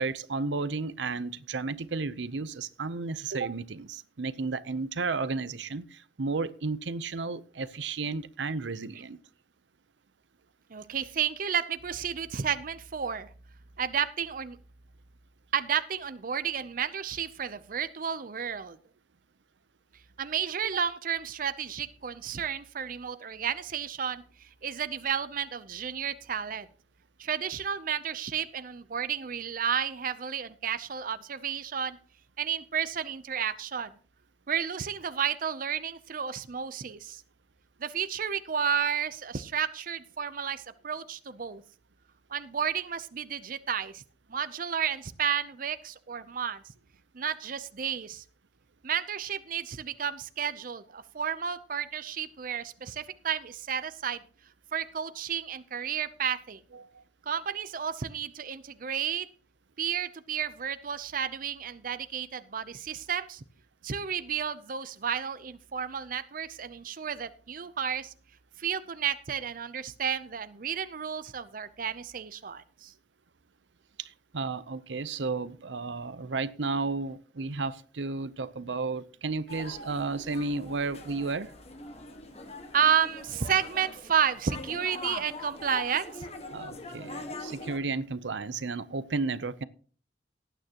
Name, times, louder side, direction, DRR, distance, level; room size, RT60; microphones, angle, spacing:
voice 1, 0.0-9.2 56.7-57.0 74.0-81.5 86.5-89.6, right 3 dB, 90° right, 0.7 m, -33 dB
voice 2, 10.7-13.3 13.8-14.6 15.5-18.8 20.2-26.7 27.2-32.0 32.4-33.9 34.5-37.2 37.8-41.6 42.3-44.0 44.3-46.6 47.1-48.2 48.8-54.2 54.7-56.6 57.3-59.3 59.8-63.4 63.8-68.1 68.6-72.9 82.7-86.3, right 7 dB, 50° right, 0.6 m, -32 dB
sound 1, 79.5-87.8, left 2 dB, 35° left, 1.5 m, -42 dB
18.0 x 9.1 x 2.9 m
head